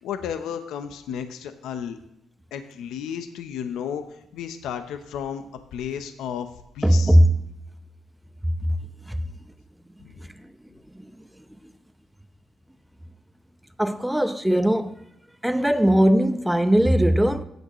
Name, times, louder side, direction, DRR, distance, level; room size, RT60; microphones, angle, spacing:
voice 1, 0.0-2.0 2.5-4.0 4.3-5.4 5.7-6.5 6.7-7.2 10.0-10.1, left 8 dB, 85° left, 0.8 m, -33 dB
voice 2, 6.8-7.3 10.4-10.5 11.0-11.1 13.8-15.0 15.4-17.4, equal, 5° right, 0.7 m, -19 dB
16.5 x 8.1 x 3.0 m
cardioid pair, 90°, 0 cm